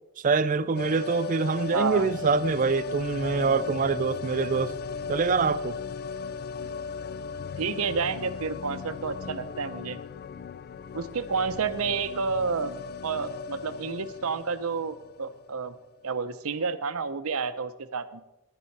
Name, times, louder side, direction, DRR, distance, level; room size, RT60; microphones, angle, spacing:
voice 1, 0.2-4.7 5.1-5.8, right 4 dB, 35° right, 0.4 m, -25 dB
sound 1, 0.8-15.6 15.9-16.0, left 5 dB, 45° left, 0.3 m, -37 dB
voice 2, 1.7-2.1 7.6-10.0 10.9-12.7 13.0-15.7 16.0-18.2, right 5 dB, 80° right, 0.7 m, -30 dB
11.5 x 10.0 x 4.6 m
head